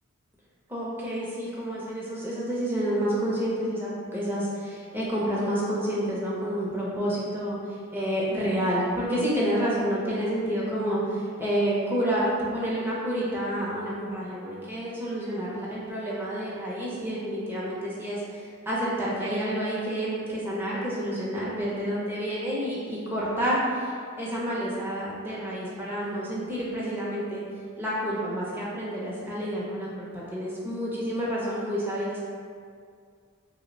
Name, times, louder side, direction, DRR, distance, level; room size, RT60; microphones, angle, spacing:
voice 1, 0.7-23.9 24.2-27.4 27.8-32.3, equal, 10° right, -7 dB, 0.6 m, -29 dB
2.9 x 2.1 x 3.8 m, 2.1 s
head